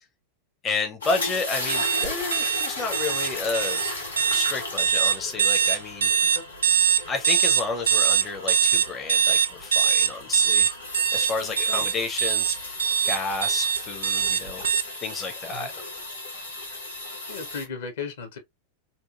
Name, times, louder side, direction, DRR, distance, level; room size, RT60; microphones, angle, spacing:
voice 1, 0.6-3.8 4.3-6.1 7.1-10.7 11.1-14.6 15.0-15.7, left 4 dB, 20° left, 0.5 m, -31 dB
sound 1, 1.0-17.7, left 2 dB, 80° left, 1.4 m, -36 dB
sound 2, 1.7-14.8, right 8 dB, 65° right, 0.3 m, -22 dB
voice 2, 11.4-11.9 15.5-15.7 17.3-18.4, left 5 dB, 60° left, 0.8 m, -36 dB
2.8 x 2.4 x 2.4 m
figure-of-eight pair, 90°, 0 cm